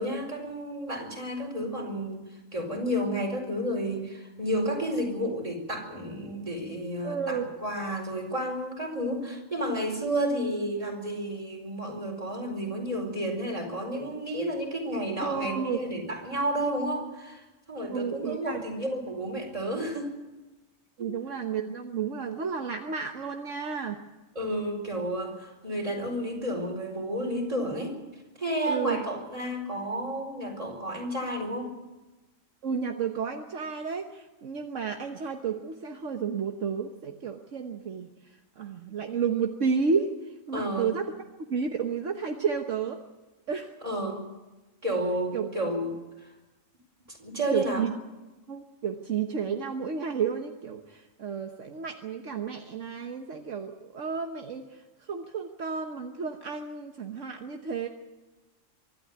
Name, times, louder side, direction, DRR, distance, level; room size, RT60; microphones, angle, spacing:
voice 1, 0.0-2.2 2.5-20.2 21.0-21.1 24.3-28.0 28.4-31.8 40.5-40.9 43.8-44.2 44.8-46.0 47.1-47.8, equal, 25° right, 1 dB, 5.0 m, -31 dB
voice 2, 7.0-7.5 15.2-15.8 17.9-18.6 21.0-24.0 28.7-29.0 32.6-38.1 38.6-40.1 40.5-41.1 41.5-43.0 43.5-43.7 45.3-45.5 47.5-47.9 48.5-57.9, right 6 dB, 65° right, 4 dB, 1.5 m, -31 dB
24.5 x 12.5 x 9.6 m, 1.1 s
omnidirectional pair, 1.4 m